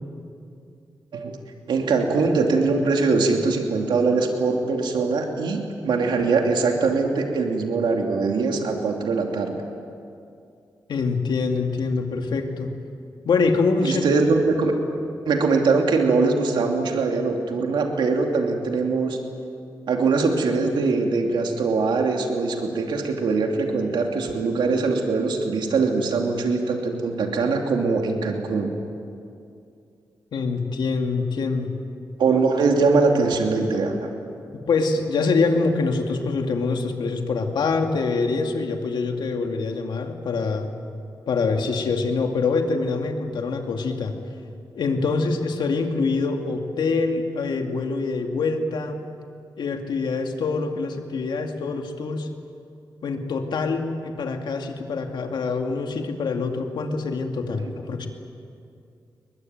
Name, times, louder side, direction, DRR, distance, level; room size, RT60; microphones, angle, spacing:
voice 1, 1.7-9.6 13.8-14.8 15.3-19.2 19.9-28.7 32.2-34.1 57.6-57.7, right 4 dB, 85° right, 2 dB, 2.8 m, -22 dB
voice 2, 10.9-12.7 13.2-14.0 30.3-31.7 34.7-40.7 41.3-44.1 44.7-49.0 49.6-52.3 53.0-58.1, left 4 dB, 80° left, 3 dB, 2.5 m, -25 dB
22.0 x 21.5 x 9.4 m, 2.5 s
cardioid pair, 65°, 8 cm